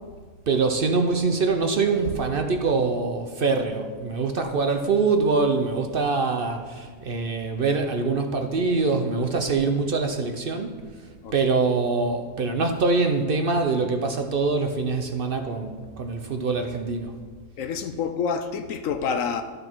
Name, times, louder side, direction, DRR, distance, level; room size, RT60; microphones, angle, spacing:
voice 1, 0.5-11.1 11.3-17.2, right 4 dB, 60° right, 0.6 m, -24 dB
voice 2, 17.6-19.4, left 6 dB, 65° left, 0.9 m, -27 dB
13.5 x 6.4 x 4.5 m
omnidirectional pair, 1.7 m